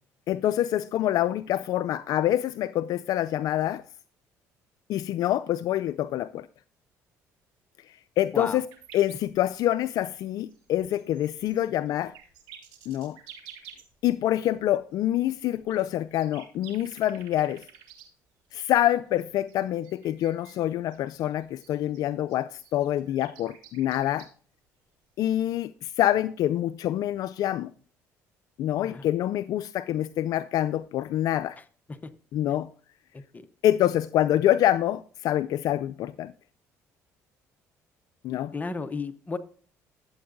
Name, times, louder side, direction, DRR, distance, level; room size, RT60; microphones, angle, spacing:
voice 1, 0.3-3.8 4.9-6.5 8.2-8.6 8.9-12.1 12.9-13.2 14.0-17.6 18.5-24.3 25.2-27.7 28.6-31.6 32.3-32.7 33.6-36.3 38.2-38.5, left 12 dB, 65° left, 0.3 m, -26 dB
sound 1, 8.7-14.0 14.2-14.3 15.1-18.1 18.6-20.6 20.9-24.3 25.4-25.5, right 9 dB, 85° right, 1.8 m, -51 dB
voice 2, 31.6-32.1 33.1-33.5 38.5-39.4, left 4 dB, 25° left, 0.8 m, -34 dB
12.5 x 7.8 x 2.6 m
supercardioid pair, 80°, 7 cm